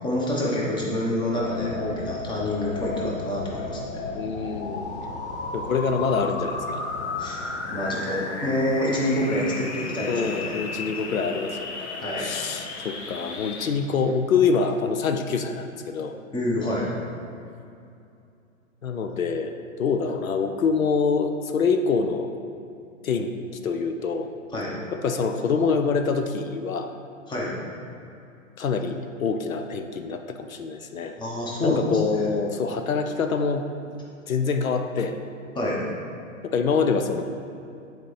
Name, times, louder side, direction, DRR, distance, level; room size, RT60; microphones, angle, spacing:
voice 1, 0.0-3.8 7.2-7.4 7.7-10.6 12.0-12.7 16.3-16.9 24.5-24.8 27.3-27.5 31.2-32.3 35.5-35.8, left 1 dB, 10° left, -3 dB, 1.0 m, -27 dB
sound 1, 1.4-13.7, left 3 dB, 55° left, 0.9 m, -34 dB
voice 2, 4.1-4.9 5.5-6.8 10.1-16.2 18.8-22.3 23.0-23.3 23.6-24.3 24.9-26.9 28.6-31.2 31.6-33.7 34.3-35.2 36.4-37.2, left 5 dB, 90° left, 6 dB, 0.6 m, -25 dB
8.0 x 4.4 x 3.2 m, 2.6 s
hypercardioid pair, 115°, 40 cm